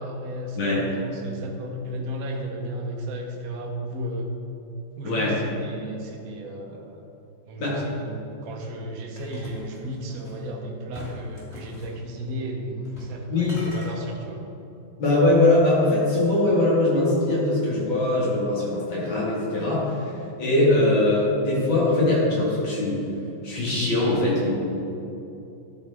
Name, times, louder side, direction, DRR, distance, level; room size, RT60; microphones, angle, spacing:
voice 1, 0.0-4.3 5.0-7.0 7.5-14.4, equal, 55° right, 1 dB, 1.1 m, -34 dB
voice 2, 5.0-5.4 7.6-7.8 13.3-13.5 15.0-23.0 23.4-24.5, left 2 dB, 80° left, -6 dB, 2.6 m, -21 dB
sound 1, 9.2-10.4 10.9-11.9 12.8-13.2 13.4-13.9, equal, 35° left, 1.8 m, -43 dB
12.0 x 4.1 x 3.5 m, 2.9 s
omnidirectional pair, 2.1 m